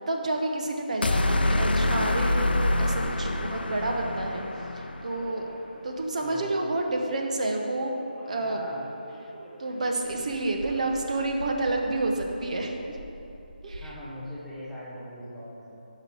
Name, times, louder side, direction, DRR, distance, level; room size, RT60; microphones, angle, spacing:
voice 1, 0.1-4.4 4.8-5.5 5.8-8.6 9.6-12.7 13.6-13.9, right 2 dB, 45° right, 2 dB, 0.7 m, -29 dB
sound 1, 1.0-5.3, left 1 dB, 85° left, 0.4 m, -26 dB
Subway metro underground, 2.6-12.3, right 1 dB, 25° right, 1.5 m, -48 dB
voice 2, 6.2-6.5 8.4-8.9 13.8-15.8, left 1 dB, ahead, -11 dB, 0.5 m, -41 dB
sound 2, 10.0-14.0, right 1 dB, 75° right, 1.3 m, -44 dB
5.6 x 5.2 x 4.7 m, 3.0 s
figure-of-eight pair, 165°, 5 cm